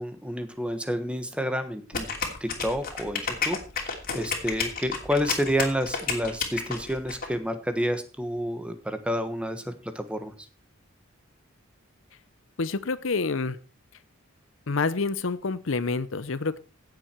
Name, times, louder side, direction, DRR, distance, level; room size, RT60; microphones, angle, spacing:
voice 1, 0.0-2.1 2.4-10.3, equal, 5° right, 9 dB, 1.3 m, -29 dB
sound 1, 1.9-7.3, left 5 dB, 45° left, 2.9 m, -30 dB
voice 2, 12.6-13.6 14.7-16.6, left 4 dB, 65° left, 15 dB, 0.7 m, -28 dB
16.5 x 7.5 x 4.5 m, 0.34 s
head